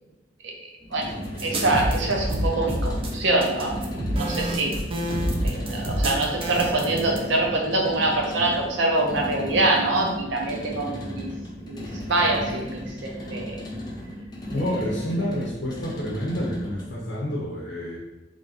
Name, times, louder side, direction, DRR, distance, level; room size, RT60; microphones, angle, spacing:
sound 1, 0.8-17.0, equal, 25° left, 0.7 m, -35 dB
sound 2, 1.4-7.2, right 1 dB, 30° right, 0.5 m, -27 dB
voice 1, 1.4-3.8 4.2-4.8 5.4-11.3 11.6-13.6 14.5-14.7, right 2 dB, 80° right, 0 dB, 0.7 m, -25 dB
voice 2, 14.5-18.0, equal, 75° left, -3 dB, 0.6 m, -29 dB
3.1 x 2.7 x 3.9 m, 1.1 s
head